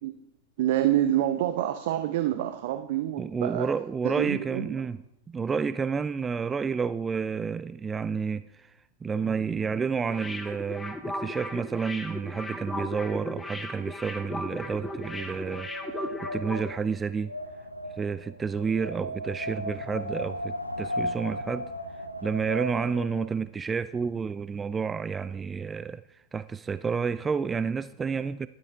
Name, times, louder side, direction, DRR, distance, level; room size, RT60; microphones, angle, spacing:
voice 1, 0.6-3.7 4.0-4.8, right 12 dB, 50° right, 0.7 m, -27 dB
voice 2, 3.2-5.0 5.3-8.7 9.0-17.3 18.0-21.7 22.2-28.5, right 5 dB, 15° right, 0.3 m, -30 dB
sound 1, 10.1-16.7 17.0-17.1, left 1 dB, 10° left, 1.3 m, -36 dB
Wind, 14.3-23.4, equal, 85° left, 1.0 m, -36 dB
12.0 x 12.0 x 3.5 m
figure-of-eight pair, 90°, 0 cm